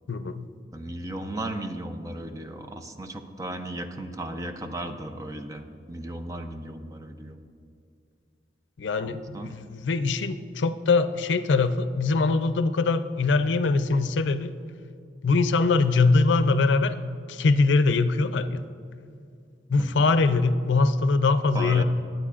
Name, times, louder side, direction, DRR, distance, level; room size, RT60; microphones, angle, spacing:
voice 1, 0.1-0.5 8.8-14.5 15.2-17.0 17.3-18.6 19.7-21.8, left 3 dB, 85° left, 11 dB, 0.5 m, -22 dB
voice 2, 0.7-7.4 9.0-9.5 19.8-20.1 21.5-21.8, right 1 dB, 20° right, 7 dB, 0.5 m, -36 dB
21.0 x 9.0 x 2.5 m, 2.4 s
head